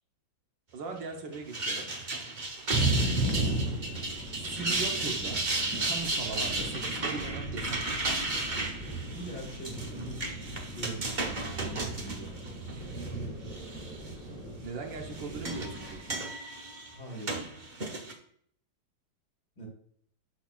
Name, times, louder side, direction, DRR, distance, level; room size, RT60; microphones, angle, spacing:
voice 1, 0.7-1.9 4.5-5.4 5.8-8.1 12.7-12.9 14.0-16.2, right 4 dB, 70° right, 3 dB, 1.6 m, -40 dB
sound 1, 1.3-13.1 13.5-14.1 14.9-18.1, right 2 dB, 40° right, 0.7 m, -34 dB
sound 2, 2.7-16.1, right 1 dB, 5° left, 2.3 m, -36 dB
voice 2, 3.0-3.5 9.1-10.2 10.7-12.6 16.9-17.5 19.6-19.7, right 2 dB, 60° left, -2 dB, 2.9 m, -43 dB
12.5 x 4.2 x 2.4 m, 0.64 s
omnidirectional pair, 2.1 m